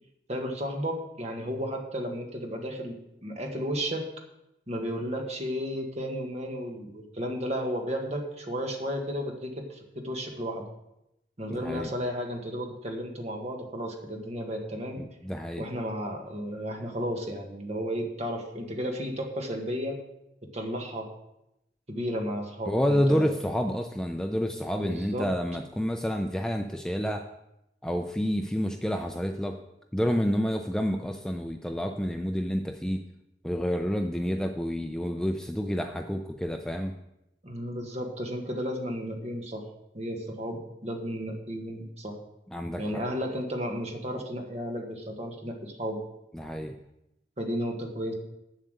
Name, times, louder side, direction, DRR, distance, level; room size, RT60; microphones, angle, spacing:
voice 1, 0.3-3.0 3.2-4.1 4.7-10.6 11.4-15.0 15.6-20.0 20.5-21.1 21.9-23.3 24.8-25.3 37.4-39.7 39.9-42.2 42.8-46.0 47.4-48.1, equal, 40° right, 2 dB, 1.5 m, -33 dB
voice 2, 11.5-11.9 15.0-15.7 22.7-27.3 27.8-29.6 29.9-33.0 33.4-36.9 42.5-43.0 46.3-46.7, equal, 5° left, 4 dB, 0.4 m, -29 dB
8.0 x 7.4 x 6.5 m, 0.87 s
head